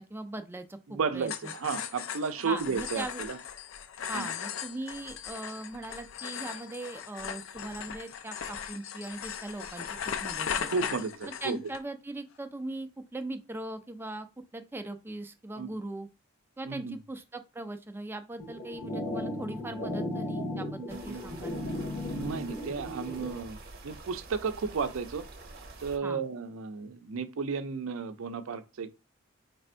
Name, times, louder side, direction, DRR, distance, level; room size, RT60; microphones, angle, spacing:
voice 1, 0.0-1.8 2.4-3.2 4.1-10.8 11.4-14.3 14.5-16.1 16.6-21.6 26.0-26.2, right 2 dB, 10° right, 0.3 m, -40 dB
voice 2, 0.9-3.4 4.1-4.2 10.7-11.6 15.6-15.7 16.7-17.0 20.8-21.5 22.1-23.6 23.8-25.2 25.8-28.9, right 5 dB, 70° right, 0.5 m, -33 dB
sound 1, 1.2-11.8, left 8 dB, 65° left, 0.4 m, -38 dB
sound 2, 18.4-23.4, left 1 dB, 35° left, 0.7 m, -35 dB
sound 3, 20.9-26.0, right 2 dB, 45° right, 0.8 m, -47 dB
3.4 x 2.5 x 4.3 m
head